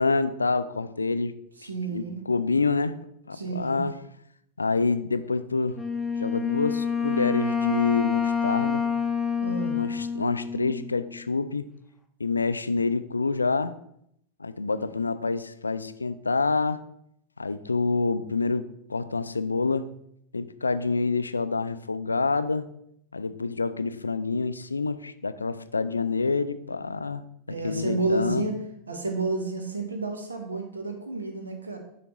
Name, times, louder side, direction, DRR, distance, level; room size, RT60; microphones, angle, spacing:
voice 1, 0.0-1.4 1.6-3.0 3.3-4.0 4.6-5.8 6.2-8.8 9.7-11.7 12.2-13.8 14.4-16.8 17.4-19.9 20.3-22.6 23.1-28.4, left 3 dB, 85° left, 13 dB, 0.3 m, -27 dB
voice 2, 1.6-2.2 3.3-3.8 9.4-9.8 27.5-28.6 28.9-31.8, right 3 dB, 85° right, 3 dB, 1.1 m, -30 dB
Wind instrument woodwind instrument, 5.7-11.2, left 6 dB, 10° left, 0.8 m, -27 dB
10.0 x 3.5 x 3.0 m, 0.74 s
figure-of-eight pair, 90°, 0 cm